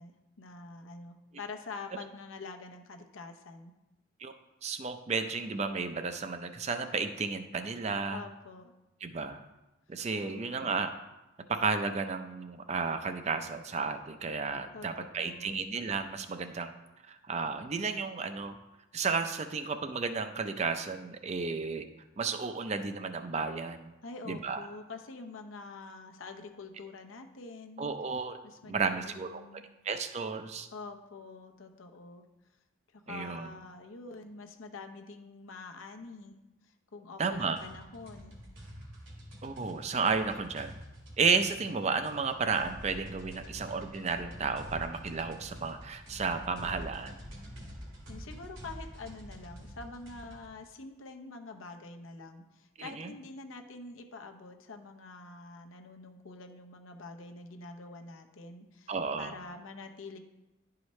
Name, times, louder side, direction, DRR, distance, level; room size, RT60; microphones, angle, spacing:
voice 1, 0.0-3.7 8.1-8.7 10.2-10.7 14.7-15.6 24.0-27.9 28.4-29.7 30.7-32.2 32.9-36.4 36.9-38.4 48.1-58.9 59.2-60.2, left 3 dB, 80° left, 5 dB, 0.7 m, -46 dB
voice 2, 4.6-8.2 9.0-9.4 9.9-10.9 11.5-16.7 17.1-18.6 18.9-21.9 22.2-23.9 24.3-24.7 27.8-28.4 28.6-29.4 29.8-30.7 33.1-33.5 37.2-37.6 39.4-40.8 41.2-47.2 52.8-53.1 58.9-59.3, right 4 dB, 35° right, 9 dB, 0.4 m, -33 dB
sound 1, 37.5-50.5, equal, 80° right, 1.9 m, -47 dB
11.0 x 4.8 x 3.1 m, 1.0 s
head